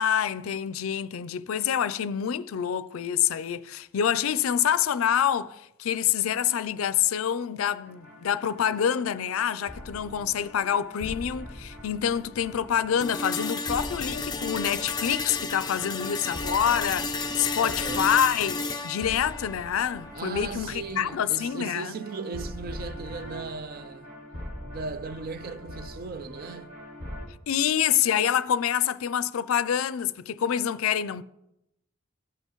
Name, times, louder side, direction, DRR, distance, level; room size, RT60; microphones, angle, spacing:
voice 1, 0.0-18.6 18.8-22.0 27.5-31.2, left 9 dB, 85° left, 0.4 m, -26 dB
sound 1, 7.8-27.3, left 1 dB, 90° right, 2.9 m, -43 dB
sound 2, 13.0-21.0, left 3 dB, 20° left, 0.5 m, -33 dB
voice 2, 17.6-18.2 20.1-24.1 24.7-26.7, right 4 dB, 45° right, 0.4 m, -37 dB
16.0 x 5.6 x 3.0 m
head